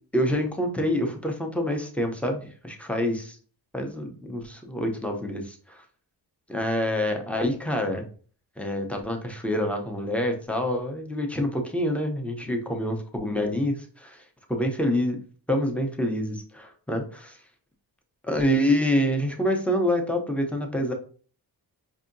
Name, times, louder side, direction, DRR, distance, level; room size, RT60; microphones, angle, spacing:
voice 1, 0.1-3.1 3.7-5.8 6.5-8.1 8.6-15.2 15.5-17.4 18.2-20.9, equal, 5° left, 3 dB, 0.5 m, -27 dB
5.2 x 2.7 x 2.5 m, 0.42 s
wide cardioid pair, 160°, 42 cm